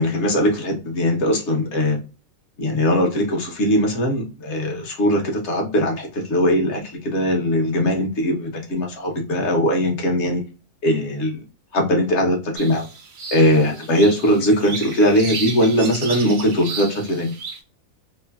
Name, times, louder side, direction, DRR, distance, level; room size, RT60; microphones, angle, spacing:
voice 1, 0.0-2.0 2.6-10.4 10.8-11.4 11.7-12.9 13.3-17.3, equal, 60° left, 1 dB, 1.1 m, -20 dB
sound 1, 12.6-17.6, right 4 dB, 75° right, 1.1 m, -33 dB
3.1 x 2.1 x 2.3 m, 0.32 s
omnidirectional pair, 1.4 m